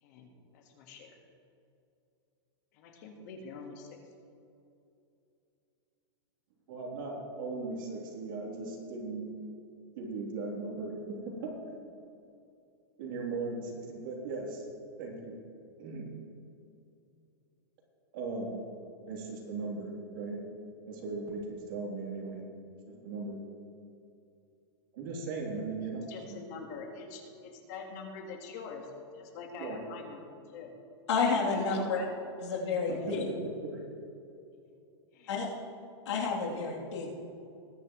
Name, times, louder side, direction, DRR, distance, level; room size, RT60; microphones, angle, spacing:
voice 1, 0.0-1.2 2.7-3.9 26.1-30.2 30.5-30.7 31.4-32.1 32.9-33.2 35.1-35.4, left 4 dB, 35° left, 3 dB, 1.6 m, -44 dB
voice 2, 6.7-9.2 9.9-11.5 13.0-14.7 15.0-15.4 15.8-16.1 18.1-18.6 19.0-20.4 20.9-22.4 22.9-23.3 24.9-26.4 29.6-29.8 33.0-33.8, right 3 dB, 50° right, -2 dB, 3.2 m, -38 dB
voice 3, 31.1-32.0 32.4-33.0 35.3-35.5 36.1-37.1, left 4 dB, 85° left, -3 dB, 3.1 m, -30 dB
20.0 x 10.0 x 3.1 m, 2.6 s
supercardioid pair, 175°, 15 cm